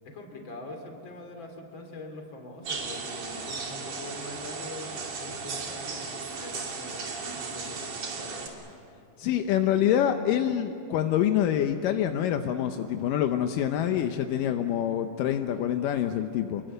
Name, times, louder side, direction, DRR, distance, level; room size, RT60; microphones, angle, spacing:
voice 1, 0.0-8.5, left 2 dB, 35° left, 3 dB, 3.4 m, -43 dB
sound 1, 2.6-8.5, right 4 dB, 65° right, 4.1 m, -36 dB
voice 2, 9.2-16.6, left 10 dB, 80° left, 7 dB, 2.4 m, -26 dB
28.0 x 22.0 x 7.9 m, 2.6 s
omnidirectional pair, 3.9 m